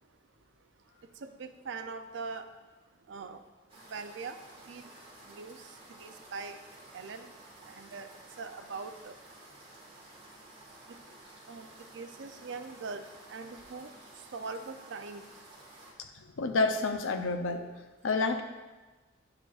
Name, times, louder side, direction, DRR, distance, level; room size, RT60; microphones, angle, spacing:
voice 1, 1.2-2.5 3.1-3.4 3.9-4.4 4.7-4.9 5.3-5.6 6.0-6.6 6.9-7.3 7.7-8.1 8.4-9.1 11.5-11.7 11.9-13.0 13.3-13.9 14.3-15.2, right 4 dB, 65° right, 8 dB, 0.4 m, -41 dB
sound 1, 3.7-15.9, right 2 dB, 30° right, 1.5 m, -53 dB
voice 2, 16.0-17.7 18.0-18.4, left 3 dB, 85° left, 7 dB, 0.5 m, -29 dB
8.7 x 4.6 x 2.4 m, 1.2 s
head